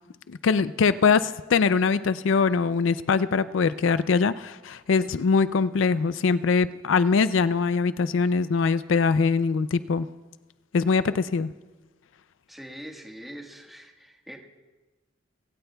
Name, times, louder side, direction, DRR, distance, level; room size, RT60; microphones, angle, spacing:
voice 1, 0.3-10.1 10.7-11.5, left 5 dB, 70° left, 14 dB, 0.4 m, -22 dB
voice 2, 12.5-14.4, equal, ahead, 1 dB, 1.4 m, -43 dB
24.5 x 16.5 x 2.3 m, 1.2 s
head